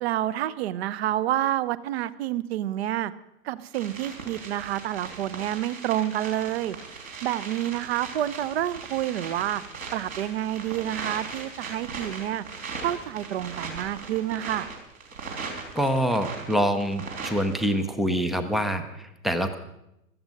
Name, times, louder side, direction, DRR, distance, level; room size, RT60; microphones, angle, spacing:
voice 1, 0.0-3.1 3.4-6.8 7.2-9.6 9.9-12.4 12.8-14.7, right 12 dB, 45° right, 17 dB, 0.7 m, -28 dB
sound 1, 3.7-17.7, right 4 dB, 70° right, 4.2 m, -39 dB
voice 2, 15.8-19.6, equal, ahead, 9 dB, 0.5 m, -25 dB
16.0 x 13.5 x 5.3 m, 0.84 s
figure-of-eight pair, 105°, 43 cm